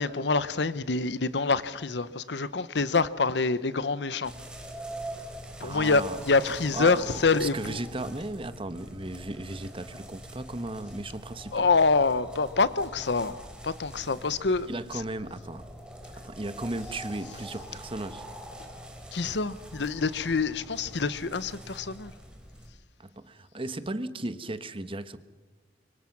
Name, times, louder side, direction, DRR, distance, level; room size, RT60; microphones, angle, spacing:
voice 1, 0.0-4.3 5.6-7.8 11.5-14.7 19.1-22.1, left 4 dB, 65° left, 0.9 m, -26 dB
sound 1, 4.2-22.7, right 1 dB, 5° right, 3.9 m, -44 dB
voice 2, 5.6-6.2 6.7-11.7 14.6-15.7 16.2-18.2 23.0-25.2, right 2 dB, 30° right, 1.2 m, -36 dB
26.5 x 24.5 x 6.0 m
head